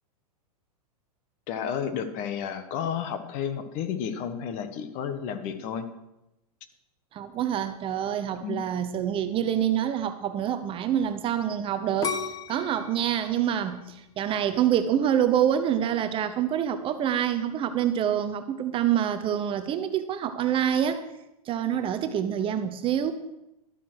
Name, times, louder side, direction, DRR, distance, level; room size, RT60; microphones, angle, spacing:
voice 1, 1.5-5.8 8.4-8.6, left 8 dB, 40° left, 10 dB, 1.3 m, -31 dB
voice 2, 7.1-12.2 12.5-21.0 21.5-23.1, right 10 dB, 25° right, 10 dB, 0.7 m, -26 dB
sound 1, 12.0-14.9 15.4-15.9, left 6 dB, 20° left, 0.9 m, -35 dB
12.5 x 7.4 x 6.3 m, 0.92 s
hypercardioid pair, 120°, 20 cm